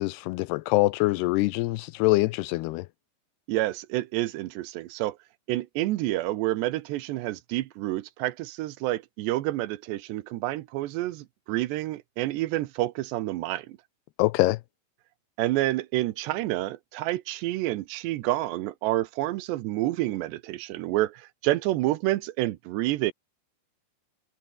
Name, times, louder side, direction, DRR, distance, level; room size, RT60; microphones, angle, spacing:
voice 1, 0.0-2.9 14.2-14.6, left 20 dB, 85° left, 2.4 m, -24 dB
voice 2, 3.5-5.2 5.5-13.8 15.4-23.1, right 16 dB, 80° right, 3.1 m, -28 dB
omnidirectional pair, 5.1 m